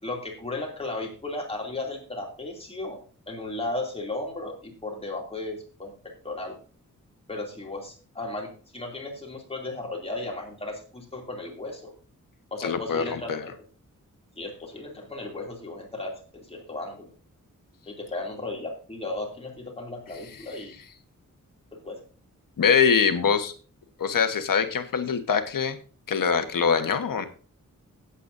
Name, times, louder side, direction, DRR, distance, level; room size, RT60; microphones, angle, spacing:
voice 1, 0.0-3.0 3.3-5.9 6.2-6.6 7.3-11.9 12.5-13.4 14.4-17.1 17.9-20.7 21.7-22.0, left 2 dB, 20° left, 0 dB, 2.8 m, -35 dB
voice 2, 12.6-13.4 22.6-23.5 24.0-25.8 26.1-27.3, left 6 dB, 85° left, 8 dB, 1.4 m, -23 dB
17.0 x 8.2 x 2.7 m, 0.38 s
wide cardioid pair, 175°, 32 cm